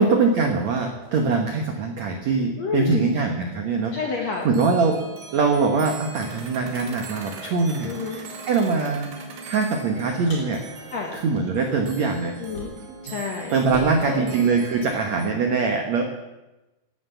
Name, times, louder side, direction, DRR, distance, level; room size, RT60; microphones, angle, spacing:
voice 1, 0.0-5.0 5.3-9.1 9.5-10.6 11.1-12.3 13.5-16.0, right 4 dB, 90° right, 4 dB, 1.5 m, -23 dB
sound 1, 1.0-3.0 3.3-3.4 3.9-4.0 4.3-15.3, right 3 dB, 75° right, 4.1 m, -40 dB
voice 2, 2.6-3.1 3.9-4.5 7.8-8.2 10.9-11.1 12.4-12.7 13.0-13.5 14.0-14.4, left 5 dB, 65° left, 1 dB, 1.6 m, -29 dB
Car, 10.2-13.0 13.3-15.1, left 2 dB, 50° left, 4.4 m, -43 dB
16.5 x 9.2 x 7.1 m, 1.0 s
omnidirectional pair, 5.2 m